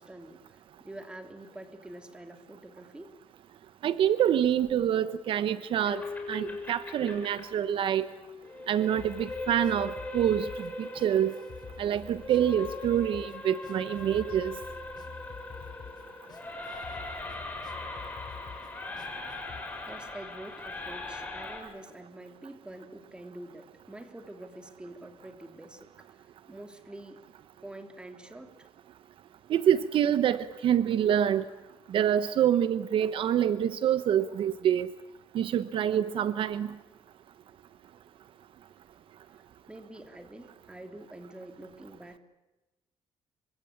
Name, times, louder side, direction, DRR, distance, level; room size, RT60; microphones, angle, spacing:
voice 1, 0.0-3.1 19.8-27.2 27.6-28.7 39.7-42.2, right 1 dB, 10° right, 6 dB, 3.1 m, -46 dB
voice 2, 3.8-6.0 6.3-8.1 8.7-10.5 10.8-11.3 11.8-14.5 29.5-31.4 31.9-34.9 35.3-36.7, right 10 dB, 65° right, 13 dB, 1.0 m, -26 dB
sound 1, 5.8-21.6, left 2 dB, 15° left, 6.5 m, -40 dB
sound 2, 9.0-19.6, left 7 dB, 45° left, 3.8 m, -48 dB
27.0 x 25.0 x 8.7 m, 1.1 s
cardioid pair, 130°, 10 cm